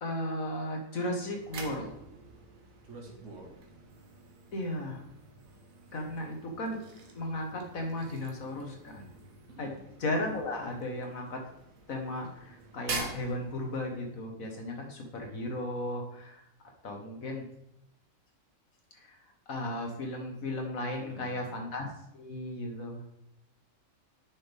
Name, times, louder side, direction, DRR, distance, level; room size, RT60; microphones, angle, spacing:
voice 1, 0.0-1.9 4.5-5.0 5.9-6.8 7.2-9.1 9.6-9.7 10.0-11.4 11.9-16.4 16.8-17.5 19.0-19.2 19.5-21.9 22.1-23.0, left 1 dB, 85° left, 2 dB, 1.9 m, -35 dB
sound 1, 1.1-14.2, right 3 dB, 90° right, 1.6 m, -46 dB
voice 2, 2.8-3.5 9.5-9.8 21.0-21.5, right 2 dB, 65° right, 0 dB, 2.0 m, -48 dB
10.0 x 6.4 x 3.5 m, 0.79 s
omnidirectional pair, 1.4 m